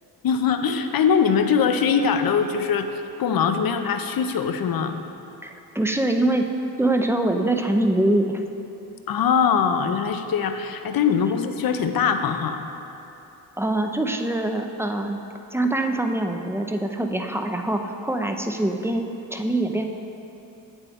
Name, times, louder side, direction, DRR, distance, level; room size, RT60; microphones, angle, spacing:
voice 1, 0.2-2.9 3.2-5.0 9.1-12.6, left 6 dB, 55° left, 8 dB, 0.6 m, -22 dB
voice 2, 5.4-6.5 6.8-8.4 13.6-15.2 15.5-19.0 19.3-19.9, right 1 dB, 5° right, 4 dB, 0.4 m, -24 dB
8.1 x 7.1 x 3.5 m, 3.0 s
cardioid pair, 70°, 44 cm